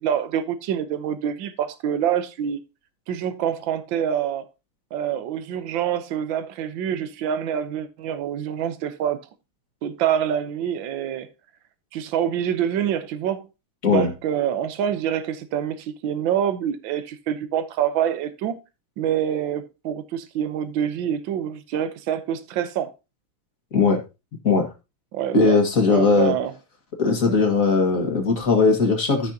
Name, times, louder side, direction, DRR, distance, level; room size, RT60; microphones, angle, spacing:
voice 1, 0.0-2.6 3.1-4.4 4.9-9.2 9.8-11.3 11.9-13.5 13.9-18.6 19.0-22.9 25.1-25.6 25.9-26.5, right 9 dB, 70° right, 1.6 m, -26 dB
voice 2, 23.7-24.0 24.4-24.7 25.3-26.3 27.0-29.3, left 4 dB, 40° left, 2.4 m, -19 dB
14.5 x 6.1 x 2.8 m
omnidirectional pair, 2.4 m